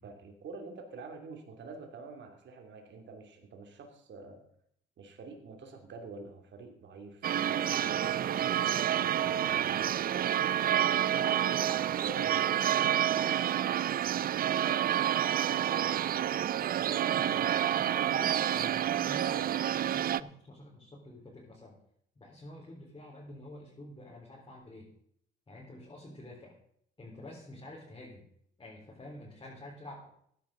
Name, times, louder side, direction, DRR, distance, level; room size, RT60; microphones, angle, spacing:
voice 1, 0.0-4.4 5.0-10.3 10.9-13.0 14.0-16.2 16.8-17.5, right 3 dB, 65° right, 4 dB, 2.8 m, -47 dB
sound 1, 7.2-20.2, right 11 dB, 50° right, 0.4 m, -29 dB
voice 2, 17.7-21.8 22.2-24.9 25.5-26.6 27.0-28.3 28.6-30.1, left 1 dB, 25° left, -4 dB, 4.2 m, -48 dB
15.5 x 10.5 x 3.9 m, 0.66 s
cardioid pair, 90°, 20 cm